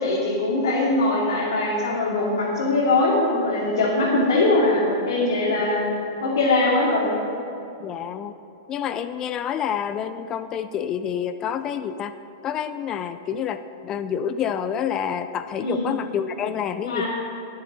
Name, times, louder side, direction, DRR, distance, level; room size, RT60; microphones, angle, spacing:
voice 1, 0.0-5.9 6.2-7.2 15.6-15.9 16.8-17.1, left 2 dB, 80° left, -7 dB, 2.6 m, -21 dB
voice 2, 7.8-8.4 8.7-12.2 12.4-17.1, left 8 dB, 25° left, 11 dB, 0.4 m, -28 dB
19.0 x 7.7 x 4.1 m, 2.8 s
supercardioid pair, 150°, 2 cm